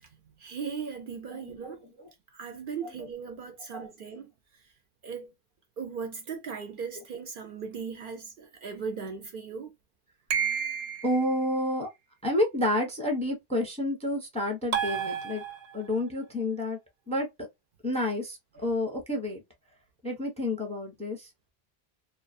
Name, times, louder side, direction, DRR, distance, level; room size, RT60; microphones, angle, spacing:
voice 1, 0.4-1.8 2.3-4.3 5.0-5.3 5.8-9.7, right 5 dB, 60° right, 0.7 m, -38 dB
voice 2, 1.3-2.1 3.7-3.9 11.0-11.9 12.2-15.4 15.7-16.8 17.1-17.3 17.8-19.4 20.0-21.3, left 1 dB, 10° left, 0.5 m, -30 dB
sound 1, 10.3-11.2 14.7-15.9, right 8 dB, 90° right, 0.9 m, -30 dB
2.4 x 2.2 x 2.5 m
omnidirectional pair, 1.1 m